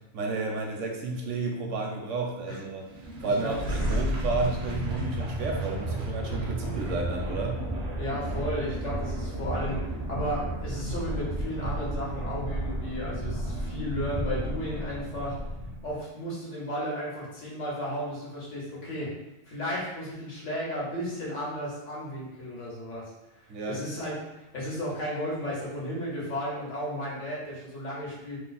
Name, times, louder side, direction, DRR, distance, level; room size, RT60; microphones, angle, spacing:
voice 1, 0.1-2.8 3.2-7.7 23.5-23.8, right 3 dB, 80° right, 1 dB, 1.0 m, -32 dB
sound 1, 2.9-16.0, right 1 dB, 45° right, 0.5 m, -32 dB
voice 2, 3.2-3.9 8.0-15.4 15.8-19.1 19.4-24.2 24.5-28.4, equal, 75° left, -5 dB, 1.5 m, -34 dB
3.2 x 2.1 x 4.0 m, 0.98 s
omnidirectional pair, 1.3 m